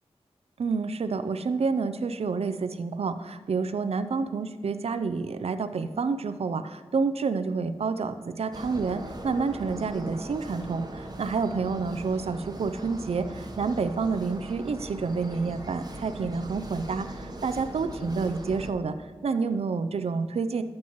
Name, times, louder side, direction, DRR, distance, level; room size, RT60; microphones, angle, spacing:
voice 1, 0.6-20.6, right 4 dB, 65° right, 11 dB, 0.5 m, -29 dB
sound 1, 8.5-18.7, right 1 dB, 35° right, 1.0 m, -39 dB
11.5 x 7.4 x 3.0 m, 1.5 s
cardioid pair, 50°, 11 cm